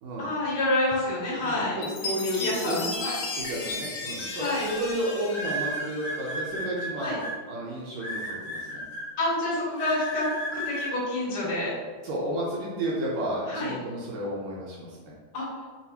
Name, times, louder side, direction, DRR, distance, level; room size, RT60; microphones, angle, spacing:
voice 1, 0.2-1.8 2.3-3.1 4.3-4.7 7.0-7.2 9.2-10.2 10.5-11.7 13.5-13.7 15.3-15.6, left 2 dB, 40° left, -12 dB, 1.4 m, -28 dB
voice 2, 1.4-2.8 3.4-8.8 12.0-15.1, right 1 dB, 75° right, -5 dB, 1.7 m, -32 dB
Chime, 1.8-6.4, left 3 dB, 80° left, 2.1 m, -35 dB
sound 1, 3.8-4.1 5.3-7.3 8.0-9.0 9.8-10.9, right 1 dB, 55° left, 2.2 m, -33 dB
5.4 x 2.4 x 2.8 m, 1.5 s
omnidirectional pair, 3.8 m